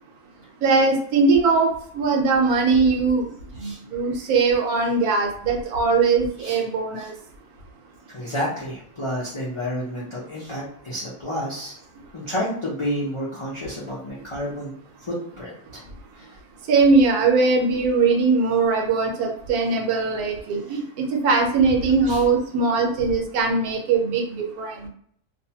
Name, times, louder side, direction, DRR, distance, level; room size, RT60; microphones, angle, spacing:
voice 1, 0.6-3.3 3.6-7.1 16.7-24.7, right 4 dB, 75° right, 2 dB, 1.1 m, -20 dB
voice 2, 8.1-11.8 12.1-14.7 15.0-15.8 16.1-16.3 22.1-22.2, equal, 50° left, -8 dB, 0.3 m, -30 dB
2.7 x 2.2 x 2.8 m, 0.65 s
omnidirectional pair, 1.6 m